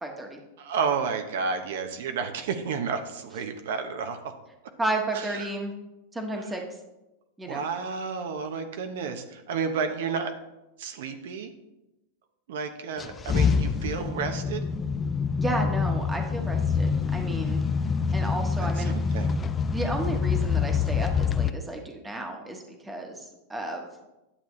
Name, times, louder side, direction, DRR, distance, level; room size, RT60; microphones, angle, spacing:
voice 1, 0.0-0.4 4.8-5.7 6.1-6.6 7.4-7.7 15.3-17.6 18.1-18.9 19.7-23.9, right 2 dB, 10° right, 3 dB, 1.2 m, -32 dB
voice 2, 0.6-4.3 5.1-5.5 7.5-10.3 10.8-11.5 12.5-14.6 18.8-19.4, right 5 dB, 75° right, 6 dB, 0.8 m, -31 dB
sound 1, 13.0-21.5, left 5 dB, 20° left, 0.4 m, -26 dB
9.9 x 6.8 x 3.2 m, 0.97 s
supercardioid pair, 135°, 0 cm